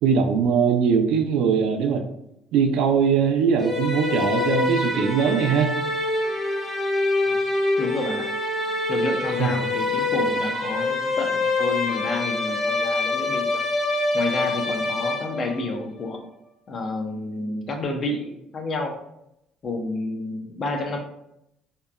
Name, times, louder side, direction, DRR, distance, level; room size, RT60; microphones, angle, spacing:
voice 1, 0.0-2.1 2.5-5.8 9.4-9.5, right 6 dB, 75° right, 5 dB, 0.3 m, -21 dB
sound 1, 3.6-15.7, left 2 dB, 10° left, 0.7 m, -25 dB
voice 2, 7.8-8.3 8.9-13.5 14.1-16.2 16.7-19.0 19.6-21.0, left 2 dB, 35° left, 3 dB, 0.4 m, -30 dB
2.8 x 2.2 x 2.3 m, 0.81 s
cardioid pair, 145°, 0 cm